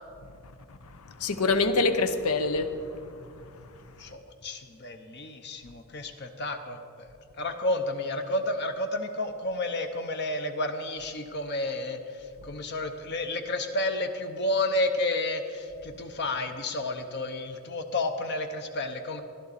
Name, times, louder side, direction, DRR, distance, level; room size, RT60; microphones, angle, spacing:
voice 1, 0.9-3.1 3.5-3.7, left 3 dB, 85° left, 9 dB, 0.8 m, -26 dB
voice 2, 4.0-7.1 7.4-19.2, left 2 dB, 50° left, 6 dB, 0.8 m, -31 dB
14.5 x 11.5 x 4.1 m, 2.4 s
head